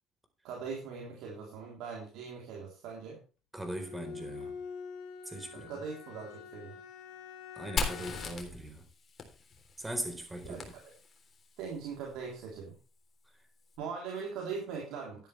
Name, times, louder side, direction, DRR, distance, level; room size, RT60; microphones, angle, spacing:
voice 1, 0.4-3.2 5.5-6.8 10.4-10.8 11.6-12.7 13.8-15.3, right 5 dB, 75° right, 3.6 m, -41 dB
voice 2, 3.5-4.6 5.3-5.7 7.6-8.8 9.8-10.6, right 1 dB, 10° right, 4.2 m, -40 dB
Bowed string instrument, 3.7-8.5, left 6 dB, 85° left, 1.6 m, -46 dB
Fire, 7.8-11.4, left 4 dB, 40° left, 3.5 m, -38 dB
13.0 x 10.0 x 3.4 m
cardioid pair, 100°, 0 cm